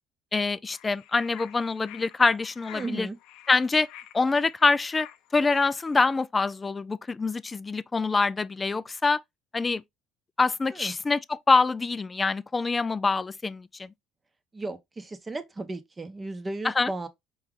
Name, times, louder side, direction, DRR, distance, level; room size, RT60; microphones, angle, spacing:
voice 1, 0.3-3.1 3.5-3.9 4.1-5.1 5.3-9.2 9.5-9.8 10.4-13.9 16.6-16.9, left 4 dB, 20° left, 0.3 m, -25 dB
sound 1, 0.7-6.0, left 12 dB, 75° left, 0.6 m, -48 dB
voice 2, 2.7-3.2 10.7-10.9 14.5-17.1, right 2 dB, 20° right, 0.8 m, -35 dB
4.7 x 2.8 x 3.6 m
cardioid pair, 115°, 0 cm